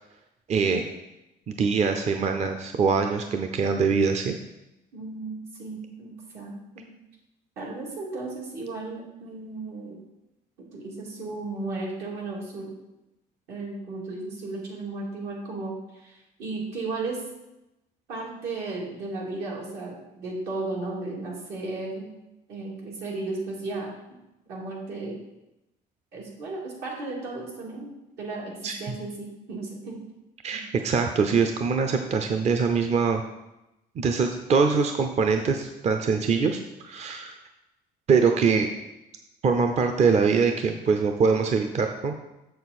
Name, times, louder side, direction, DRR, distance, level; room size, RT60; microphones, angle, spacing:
voice 1, 0.5-0.8 1.5-4.4 28.6-28.8 30.4-33.2 34.0-37.4 38.1-38.7 39.4-42.1, right 5 dB, 40° right, 5 dB, 0.6 m, -23 dB
voice 2, 4.9-6.9 7.6-10.0 10.7-12.7 13.5-17.2 18.1-22.2 22.5-23.9 24.5-25.2 26.1-30.0 30.5-30.6, right 3 dB, 80° right, -3 dB, 2.6 m, -35 dB
6.9 x 6.7 x 4.2 m, 0.94 s
cardioid pair, 110°, 17 cm